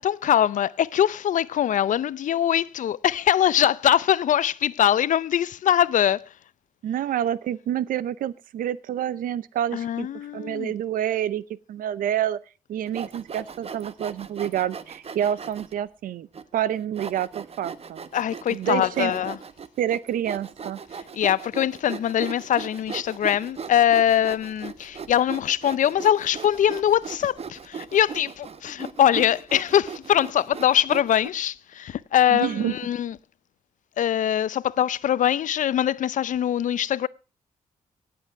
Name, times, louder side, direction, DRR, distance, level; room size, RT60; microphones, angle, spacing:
voice 1, 0.0-6.3 9.7-10.7 18.1-19.4 21.1-33.2 34.0-37.1, left 10 dB, 65° left, 0.5 m, -22 dB
voice 2, 6.8-10.1 10.3-11.4 11.7-12.4 12.7-16.3 16.5-18.0 18.5-19.1 19.8-20.8 32.3-32.7, right 10 dB, 80° right, 0.7 m, -28 dB
Sawing, 12.9-15.7 16.3-16.4 17.0-31.3, right 6 dB, 45° right, 1.0 m, -38 dB
18.0 x 7.9 x 4.7 m
cardioid pair, 80°, 14 cm